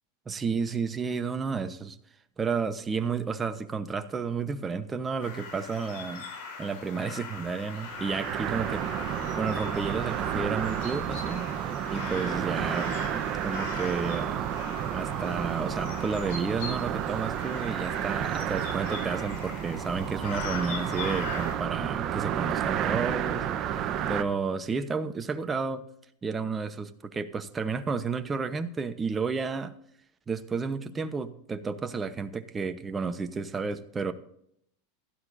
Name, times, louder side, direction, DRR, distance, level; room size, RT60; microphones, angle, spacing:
voice 1, 0.3-2.0 2.4-6.2 6.6-12.9 13.4-14.4 14.9-25.8 26.2-29.7 30.3-34.1, right 5 dB, 20° right, 9 dB, 1.0 m, -32 dB
sound 1, 5.2-21.6, left 4 dB, 65° left, 4.8 m, -41 dB
sound 2, 7.9-24.2, right 9 dB, 40° right, 1.0 m, -31 dB
16.0 x 12.0 x 2.7 m, 0.69 s
hypercardioid pair, 110°, 0 cm